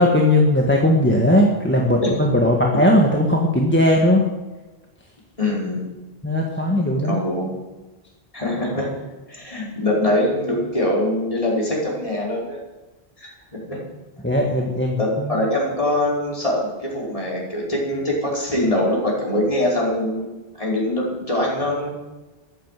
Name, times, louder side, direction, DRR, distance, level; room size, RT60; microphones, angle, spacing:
voice 1, 0.0-4.2 6.2-7.2 14.2-15.0, left 1 dB, 10° left, -1 dB, 1.7 m, -18 dB
voice 2, 5.4-5.9 7.0-7.5 8.3-9.0 9.3-12.6 13.2-13.3 13.7-13.8 15.0-20.3 20.6-21.9, left 1 dB, 30° left, -4 dB, 5.4 m, -23 dB
14.0 x 11.5 x 7.7 m, 1.1 s
omnidirectional pair, 1.1 m